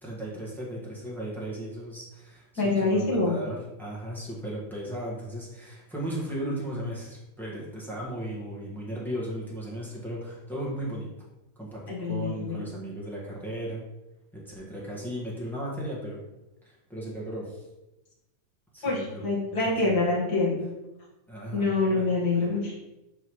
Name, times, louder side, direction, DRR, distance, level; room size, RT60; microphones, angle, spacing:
voice 1, 0.0-11.1 11.5-13.8 14.4-16.2 16.6-17.6 18.7-19.9 21.3-22.1 22.3-22.5, right 1 dB, ahead, -5 dB, 0.9 m, -36 dB
voice 2, 2.6-3.4 11.9-12.5 18.8-20.7 21.5-22.8, left 3 dB, 40° left, -4 dB, 1.9 m, -26 dB
11.5 x 3.9 x 3.3 m, 0.95 s
omnidirectional pair, 3.5 m